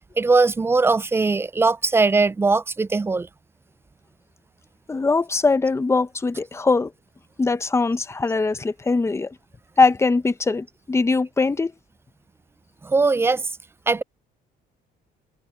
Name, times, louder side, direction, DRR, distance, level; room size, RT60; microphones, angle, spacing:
voice 1, 0.2-3.3 12.8-13.4 13.9-14.0, right 3 dB, 15° right, 0.4 m, -20 dB
voice 2, 4.9-6.9 7.4-9.3 9.8-11.7, left 3 dB, 15° left, 0.9 m, -21 dB
cardioid pair, 110°, 17 cm